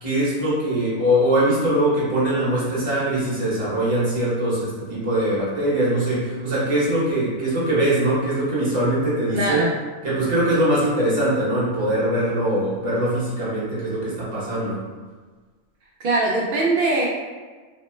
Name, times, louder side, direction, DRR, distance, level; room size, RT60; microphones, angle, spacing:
voice 1, 0.0-9.6 10.0-14.8, right 1 dB, 30° right, -7 dB, 0.8 m, -22 dB
voice 2, 9.3-9.7 16.0-17.1, right 2 dB, 70° right, -3 dB, 0.5 m, -21 dB
3.0 x 2.0 x 3.1 m, 1.4 s
omnidirectional pair, 1.4 m